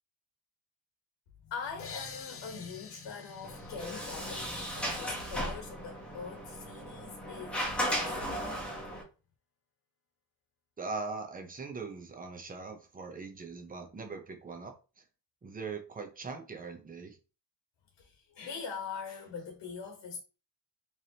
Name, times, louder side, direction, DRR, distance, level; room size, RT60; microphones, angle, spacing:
voice 1, 1.4-8.9 17.9-20.2, left 5 dB, 75° left, 1.1 m, -43 dB
sound 1, 1.8-5.3, left 6 dB, 35° left, 0.5 m, -49 dB
Sliding door, 3.4-9.0, equal, 5° left, 1.1 m, -36 dB
voice 2, 10.8-15.0 15.4-17.2, right 4 dB, 20° right, 0.7 m, -41 dB
4.5 x 3.3 x 2.8 m
wide cardioid pair, 175°, 44 cm